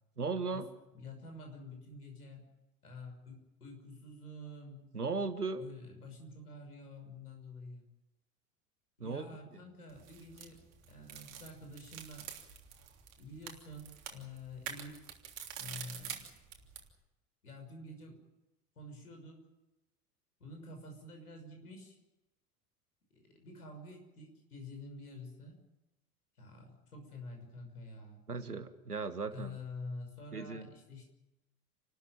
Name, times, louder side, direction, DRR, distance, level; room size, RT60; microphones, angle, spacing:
voice 1, 0.2-0.7 4.9-5.6 9.0-9.3 28.3-29.6 30.3-30.7, right 4 dB, 85° right, 11 dB, 1.5 m, -36 dB
voice 2, 0.9-2.5 2.8-4.9 5.5-7.9 9.0-12.3 13.2-15.0 15.6-16.2 17.4-18.1 18.8-19.4 20.4-22.0 23.4-25.6 26.4-28.2 29.3-31.0, left 2 dB, 80° left, 4 dB, 6.1 m, -48 dB
sound 1, 9.9-16.9, right 9 dB, 60° right, 3.4 m, -47 dB
29.0 x 13.0 x 9.0 m, 0.95 s
figure-of-eight pair, 75°, 45 cm